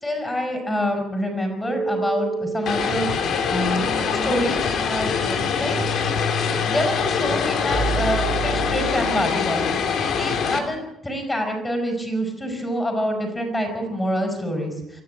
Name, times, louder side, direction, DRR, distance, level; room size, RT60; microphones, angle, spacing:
voice 1, 0.0-3.1 3.5-3.9 4.2-5.7 6.6-9.7 10.1-15.0, equal, 10° left, 4 dB, 5.7 m, -26 dB
sound 1, 1.7-9.6, right 3 dB, 20° right, 3.9 m, -31 dB
Vehicle, 2.7-10.6, left 6 dB, 60° left, 2.7 m, -24 dB
23.5 x 14.0 x 9.2 m, 0.89 s
cardioid pair, 155°, 0 cm